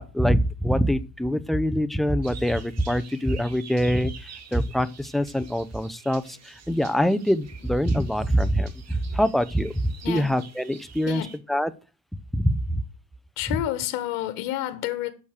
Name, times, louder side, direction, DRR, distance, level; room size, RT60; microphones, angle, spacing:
voice 1, 0.0-11.2 11.5-11.7 12.3-12.8, equal, ahead, 0.6 m, -24 dB
sound 1, 2.2-11.4, right 7 dB, 35° right, 1.8 m, -48 dB
voice 2, 9.8-10.3 11.1-11.3 13.4-15.1, left 13 dB, 75° left, 1.6 m, -30 dB
8.6 x 6.5 x 6.6 m
supercardioid pair, 110°, 44 cm